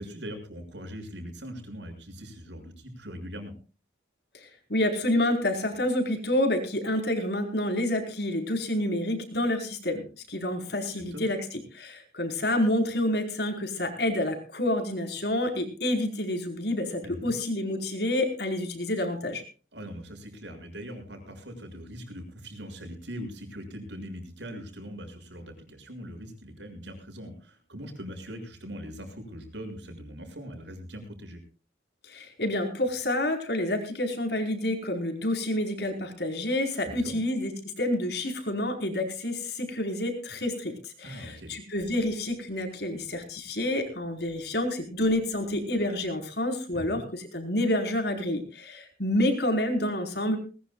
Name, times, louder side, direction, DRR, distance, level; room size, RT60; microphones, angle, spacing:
voice 1, 0.0-3.5 10.9-11.2 17.0-17.3 19.7-31.4 36.8-37.2 41.0-41.6 46.7-47.0, equal, 75° right, 6 dB, 6.8 m, -41 dB
voice 2, 4.3-19.4 32.1-37.5 37.8-50.4, left 1 dB, 60° left, 5 dB, 4.8 m, -28 dB
21.0 x 20.5 x 2.4 m, 0.36 s
head